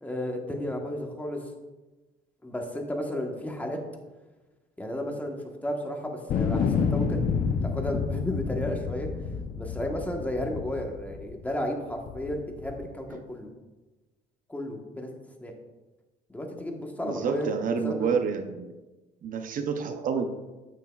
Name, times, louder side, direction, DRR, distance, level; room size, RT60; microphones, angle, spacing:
voice 1, 0.0-1.5 2.4-3.8 4.8-9.1 9.6-13.5 14.5-15.1 15.4-15.5 16.3-17.5 17.8-18.1, left 1 dB, 10° left, 1 dB, 1.2 m, -33 dB
sound 1, 6.3-11.5 12.1-12.8, left 6 dB, 55° left, 0.7 m, -29 dB
voice 2, 17.0-18.7 19.2-20.3, right 6 dB, 50° right, 6 dB, 0.7 m, -28 dB
8.9 x 8.4 x 2.4 m, 1.2 s
cardioid pair, 110°, 17 cm